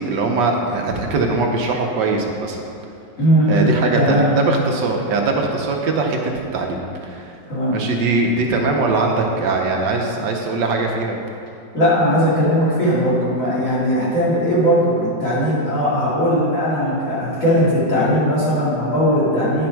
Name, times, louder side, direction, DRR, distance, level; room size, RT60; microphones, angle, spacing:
voice 1, 0.0-2.6 3.5-6.2 6.5-7.4 7.7-11.2, right 3 dB, 75° right, 1 dB, 1.3 m, -21 dB
voice 2, 3.2-4.3 7.5-7.8 11.7-19.7, equal, 45° left, -9 dB, 2.6 m, -18 dB
9.3 x 5.2 x 4.5 m, 2.5 s
omnidirectional pair, 2.0 m